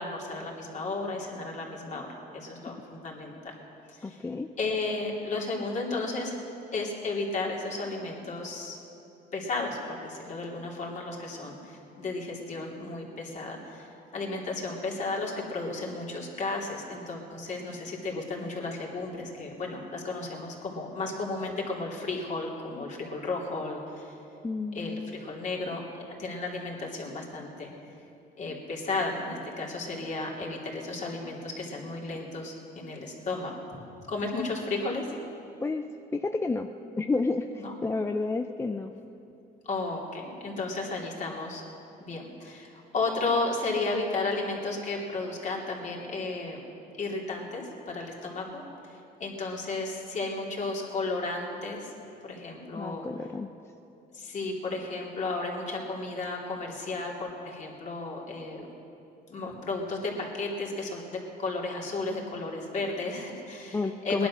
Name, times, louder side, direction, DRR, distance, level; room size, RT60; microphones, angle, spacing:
voice 1, 0.0-3.5 3.9-4.2 4.6-6.3 6.7-8.8 9.3-24.2 24.7-25.8 26.2-27.7 28.4-33.5 34.1-35.1 37.6-37.7 39.6-41.6 42.0-46.6 47.0-51.9 52.2-53.0 54.1-58.7 59.3-64.3, left 3 dB, 45° left, -1 dB, 3.1 m, -33 dB
voice 2, 4.0-4.5 18.4-18.5 24.4-25.1 35.6-35.9 36.1-36.7 37.0-38.9 52.7-53.5 63.7-64.3, left 3 dB, 15° left, 6 dB, 0.5 m, -30 dB
19.0 x 11.0 x 6.3 m, 2.9 s
cardioid pair, 110°, 17 cm